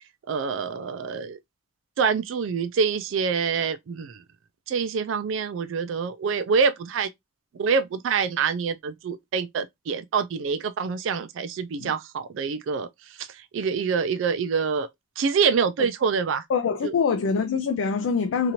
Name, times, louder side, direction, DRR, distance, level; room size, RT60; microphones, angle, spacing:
voice 1, 0.3-1.4 2.0-4.2 4.7-7.1 7.5-12.9 13.2-14.9 15.2-16.4 16.8-16.9, right 5 dB, 70° right, 0.4 m, -26 dB
voice 2, 16.5-18.5, left 5 dB, 80° left, 0.4 m, -24 dB
2.8 x 2.5 x 2.9 m
head